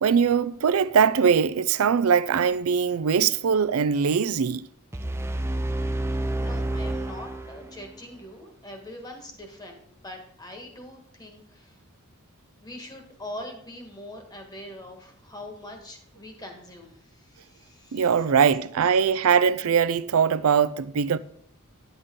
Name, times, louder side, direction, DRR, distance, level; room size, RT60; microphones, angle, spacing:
voice 1, 0.0-4.7 17.9-21.2, right 6 dB, 80° right, 0.4 m, -21 dB
sound 1, 4.9-8.0, right 1 dB, 10° right, 0.4 m, -29 dB
voice 2, 6.4-11.8 12.6-18.1, left 1 dB, 20° left, 1.5 m, -43 dB
9.6 x 8.0 x 3.7 m
head